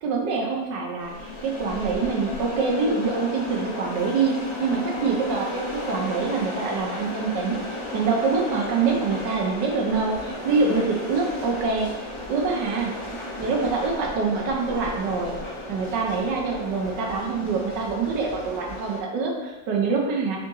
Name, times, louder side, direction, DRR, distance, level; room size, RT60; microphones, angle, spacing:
voice 1, 0.0-7.6 7.9-12.9 13.4-15.4 15.7-20.4, right 4 dB, 75° right, 0 dB, 1.3 m, -25 dB
sound 1, 1.0-19.0, left 1 dB, 50° left, 0.3 m, -34 dB
3.9 x 3.8 x 3.5 m, 1.1 s
omnidirectional pair, 2.0 m